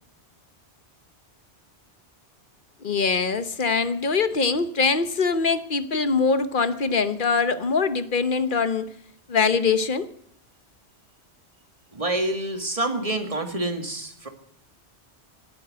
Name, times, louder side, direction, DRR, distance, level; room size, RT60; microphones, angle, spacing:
voice 1, 2.8-8.9 9.3-10.1, left 5 dB, 50° left, 13 dB, 1.2 m, -23 dB
voice 2, 11.9-14.3, right 2 dB, 30° right, 7 dB, 2.1 m, -27 dB
18.0 x 9.3 x 7.7 m, 0.69 s
omnidirectional pair, 1.1 m